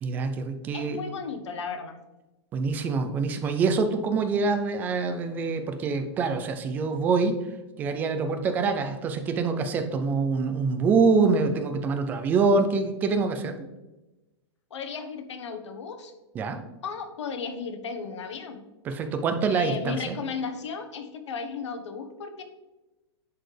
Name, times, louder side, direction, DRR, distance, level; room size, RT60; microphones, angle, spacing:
voice 1, 0.0-1.0 2.5-7.4 7.8-13.6 16.3-16.6 18.8-20.2, right 4 dB, 10° right, 7 dB, 0.3 m, -25 dB
voice 2, 0.7-2.0 14.7-16.1 16.8-18.6 19.5-22.4, left 5 dB, 85° left, 7 dB, 1.1 m, -35 dB
10.5 x 4.2 x 3.3 m, 1.1 s
supercardioid pair, 170°, 15 cm